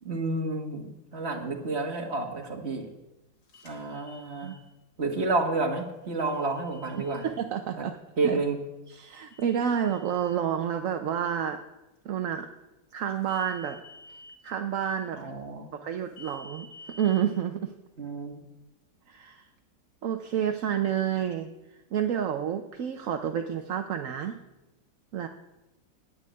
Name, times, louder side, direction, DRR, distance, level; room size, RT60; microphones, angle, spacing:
voice 1, 0.0-2.9 3.6-4.6 5.0-7.3 7.8-7.9 8.2-8.6 15.1-15.7 18.0-18.4, right 3 dB, 35° right, 2 dB, 1.8 m, -30 dB
sound 1, 3.5-4.6 6.2-7.3 9.3-10.4 13.2-14.4 16.2-17.2, left 2 dB, 85° left, 3.0 m, -50 dB
voice 2, 7.2-7.9 8.2-8.3 9.0-11.6 12.0-12.5 12.9-13.8 14.4-15.2 15.7-16.7 17.0-17.7 19.1-19.4 20.0-21.5 21.9-24.4 25.1-25.3, right 9 dB, 55° right, 6 dB, 1.0 m, -29 dB
11.0 x 7.8 x 9.6 m, 1.0 s
omnidirectional pair, 1.9 m